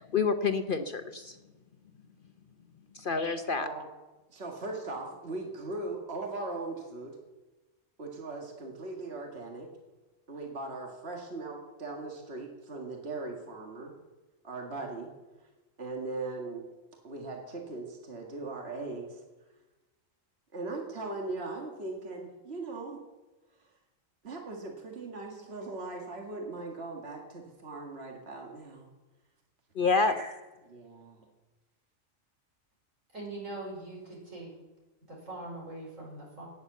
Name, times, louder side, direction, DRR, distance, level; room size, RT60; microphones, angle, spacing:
voice 1, 0.0-1.4 2.9-3.7 29.8-30.1, left 4 dB, 50° left, 8 dB, 0.8 m, -28 dB
voice 2, 4.3-7.2 8.0-9.7 10.3-13.9 14.4-15.1 15.8-16.6 17.0-19.2 20.5-23.0 24.2-28.9 30.1-30.3 30.6-31.2, right 3 dB, 50° right, 1 dB, 2.2 m, -39 dB
voice 3, 33.1-34.5 35.1-36.5, right 2 dB, 75° right, -2 dB, 5.4 m, -42 dB
18.0 x 7.6 x 8.1 m, 1.1 s
omnidirectional pair, 1.4 m